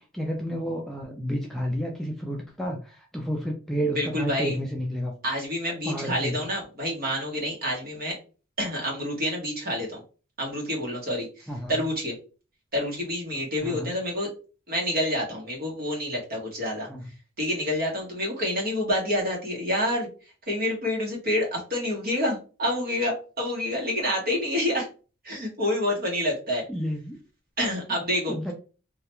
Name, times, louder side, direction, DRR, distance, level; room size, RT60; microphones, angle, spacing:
voice 1, 0.0-5.2 5.8-6.4 11.5-11.8 13.6-13.9 16.9-17.1 26.7-27.2 27.9-28.0 28.3-28.5, equal, ahead, 0 dB, 0.3 m, -31 dB
voice 2, 3.9-4.6 5.2-8.2 8.6-10.0 10.4-12.2 12.7-14.3 14.7-16.9 17.4-20.1 20.5-24.9 25.2-26.6 27.6-28.3, left 1 dB, 45° right, -1 dB, 1.0 m, -28 dB
2.3 x 2.1 x 2.9 m, 0.35 s
head